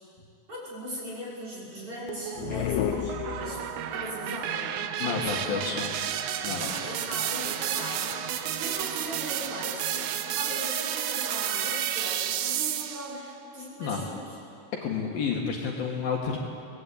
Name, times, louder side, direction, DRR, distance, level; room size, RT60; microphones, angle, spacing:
voice 1, 0.5-3.6 3.9-5.8 6.6-14.4, equal, 30° right, -6 dB, 6.8 m, -39 dB
sound 1, 2.1-13.2, right 10 dB, 75° right, 2.2 m, -31 dB
sound 2, 2.4-3.9, left 11 dB, 85° left, 3.0 m, -31 dB
voice 2, 5.0-5.9 6.4-6.7 13.8-14.0 14.8-16.4, left 6 dB, 60° left, -1 dB, 3.2 m, -30 dB
23.5 x 19.5 x 8.7 m, 2.5 s
omnidirectional pair, 5.1 m